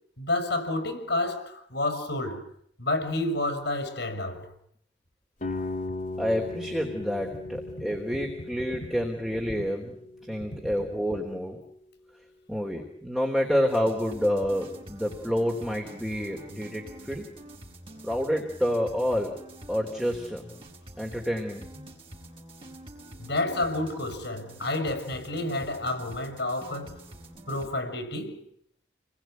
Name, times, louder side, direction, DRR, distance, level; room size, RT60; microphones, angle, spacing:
voice 1, 0.2-2.4 2.8-4.5 23.2-27.0 27.5-28.4, left 2 dB, 70° left, 6.1 m, -30 dB
sound 1, 5.4-11.2, left 2 dB, 45° left, 2.5 m, -38 dB
voice 2, 6.2-9.9 10.3-11.6 12.5-17.3 18.0-19.4 19.7-20.4 21.0-21.8, equal, 5° right, 3.4 m, -28 dB
sound 2, 13.7-27.7, right 1 dB, 30° right, 4.9 m, -47 dB
29.0 x 21.0 x 9.3 m
head